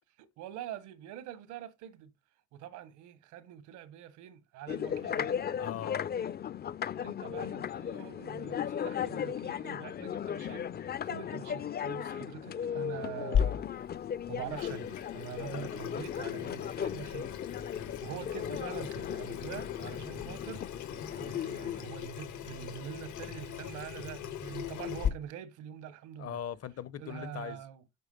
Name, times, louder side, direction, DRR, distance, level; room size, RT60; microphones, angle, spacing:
voice 1, 0.2-2.1 2.5-5.4 7.0-13.7 14.3-17.4 18.0-26.4 27.0-27.8, right 10 dB, 85° right, 1.0 m, -45 dB
sound 1, 4.7-21.8, left 8 dB, 35° left, 0.4 m, -37 dB
voice 2, 5.6-6.1 17.7-18.0 26.2-27.6, left 9 dB, 55° left, 0.8 m, -40 dB
Water tap faucet / Sink (filling or washing), 13.3-25.1, left 8 dB, 80° left, 1.4 m, -37 dB
8.1 x 5.0 x 5.3 m
supercardioid pair, 65°, 29 cm